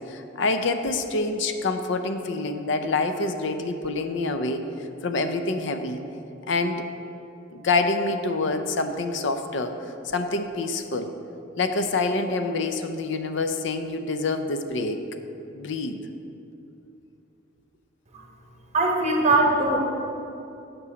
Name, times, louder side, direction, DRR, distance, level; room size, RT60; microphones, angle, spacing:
voice 1, 0.1-4.6 5.0-6.0 6.5-6.9 7.5-9.8 10.1-11.1 11.6-15.0 15.5-16.0, left 3 dB, 60° left, 7 dB, 0.6 m, -26 dB
voice 2, 18.7-19.8, right 2 dB, 35° right, 1 dB, 1.2 m, -21 dB
8.4 x 5.4 x 7.0 m, 2.8 s
head